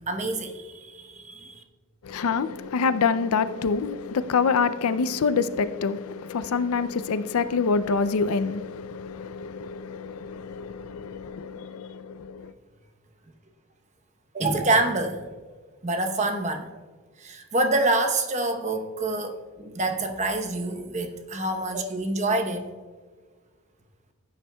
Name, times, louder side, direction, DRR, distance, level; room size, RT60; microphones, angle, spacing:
voice 1, 0.0-1.6 14.3-15.2 15.8-16.7 17.2-22.6, right 2 dB, 30° right, 0.9 m, -26 dB
voice 2, 2.0-12.5, left 5 dB, 75° left, 0.4 m, -26 dB
15.0 x 9.1 x 2.3 m
head